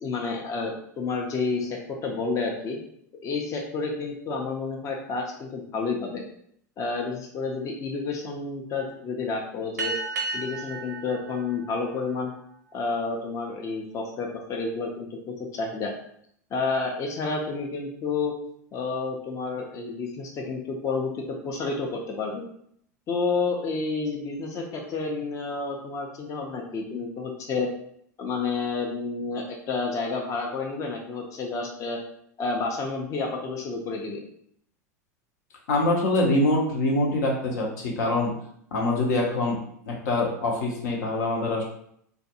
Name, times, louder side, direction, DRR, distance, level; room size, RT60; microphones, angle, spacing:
voice 1, 0.0-2.8 3.2-6.2 6.8-9.9 10.3-12.3 12.7-15.9 16.5-18.3 18.7-22.4 23.1-27.7 28.2-32.0 32.4-34.2, left 4 dB, 35° left, 1 dB, 0.5 m, -30 dB
sound 1, 9.8-12.7, right 3 dB, 90° right, 0.6 m, -34 dB
voice 2, 35.7-38.3 38.7-39.6 39.8-41.6, left 2 dB, 75° left, -1 dB, 0.8 m, -24 dB
2.5 x 2.3 x 2.7 m, 0.68 s
hypercardioid pair, 90°, 9 cm